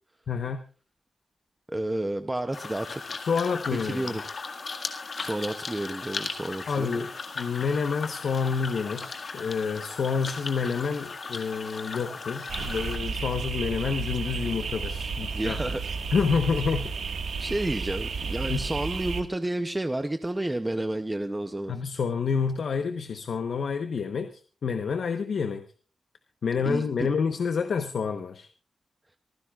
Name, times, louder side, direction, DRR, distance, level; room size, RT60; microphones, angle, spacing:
voice 1, 0.3-0.6 3.2-4.1 6.7-7.1 7.4-15.6 16.1-17.0 18.5-18.6 21.7-24.3 24.6-25.6 26.4-28.5, left 5 dB, 65° left, 7 dB, 1.0 m, -28 dB
voice 2, 1.7-3.2 3.8-4.2 5.2-7.0 15.3-15.8 17.4-21.7 26.6-27.1, right 1 dB, 10° right, 7 dB, 0.7 m, -31 dB
sound 1, 2.5-13.0, left 4 dB, 45° left, 1.8 m, -37 dB
sound 2, 12.5-19.2, right 4 dB, 80° right, 1.6 m, -32 dB
25.0 x 15.0 x 2.4 m, 0.36 s
wide cardioid pair, 170°, 0 cm